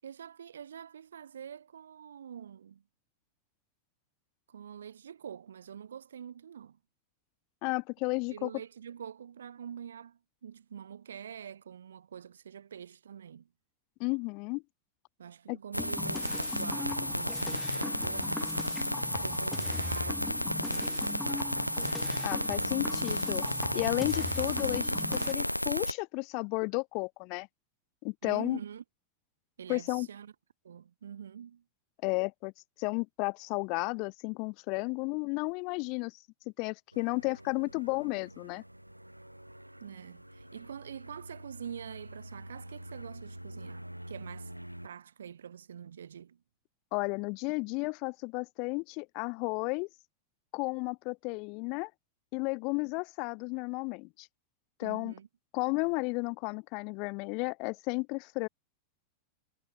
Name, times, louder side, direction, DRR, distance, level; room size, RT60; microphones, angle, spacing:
voice 1, 0.0-2.8 4.5-6.8 8.3-13.5 15.2-18.6 19.0-21.4 28.2-28.8 29.6-30.3 30.6-31.6 39.8-44.5 44.8-46.4 54.8-55.3, right 8 dB, 65° right, 7.9 m, -45 dB
voice 2, 7.6-8.5 14.0-14.6 15.5-15.6 22.2-23.4 23.7-27.5 28.0-28.6 29.7-30.1 32.0-32.5 32.8-36.1 36.6-38.6 46.9-49.9 50.5-51.9 52.3-54.3 54.8-55.1 55.5-58.5, left 31 dB, 45° left, 1.2 m, -33 dB
sound 1, 15.7-25.9, equal, 90° left, 1.3 m, -32 dB
sound 2, 15.8-25.3, left 4 dB, 10° left, 1.6 m, -40 dB
sound 3, 36.9-44.9, right 1 dB, 90° right, 5.1 m, -47 dB
figure-of-eight pair, 90°, 0 cm